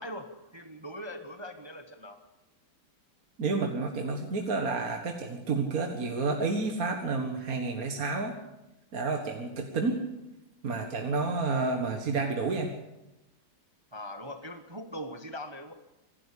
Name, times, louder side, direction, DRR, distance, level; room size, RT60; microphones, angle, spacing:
voice 1, 0.0-2.2 13.9-15.7, equal, 15° right, 7 dB, 1.2 m, -41 dB
voice 2, 3.4-8.3 8.9-10.0 10.6-12.7, right 3 dB, 50° right, 4 dB, 2.0 m, -30 dB
25.5 x 12.0 x 8.5 m, 0.96 s
omnidirectional pair, 2.0 m